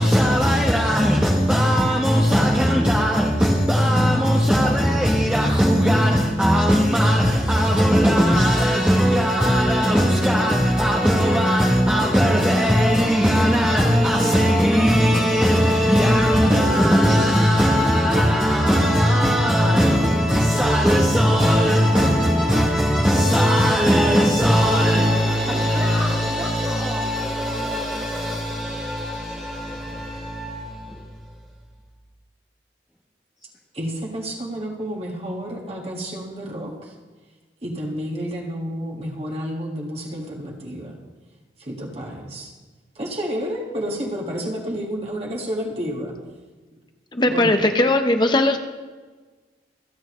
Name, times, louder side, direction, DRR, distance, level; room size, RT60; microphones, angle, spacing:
voice 1, 0.0-31.0, equal, 5° right, 1.0 m, -19 dB
voice 2, 33.7-36.9 37.6-41.0 41.6-42.5 43.0-46.1 47.3-47.6, equal, 35° right, 1.8 m, -30 dB
voice 3, 47.1-48.6, left 2 dB, 25° left, 0.9 m, -18 dB
26.5 x 9.0 x 3.1 m
head